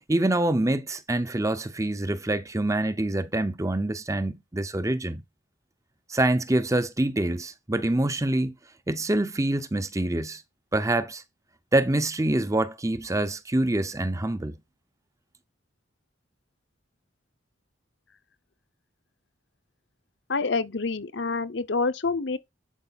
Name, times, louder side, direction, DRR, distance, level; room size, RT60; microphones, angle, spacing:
voice 1, 0.1-5.2 6.1-8.5 8.9-10.4 10.7-11.2 11.7-14.6, right 1 dB, 15° right, 0.6 m, -25 dB
voice 2, 20.3-22.4, left 4 dB, 65° left, 0.9 m, -27 dB
11.0 x 4.9 x 4.1 m
head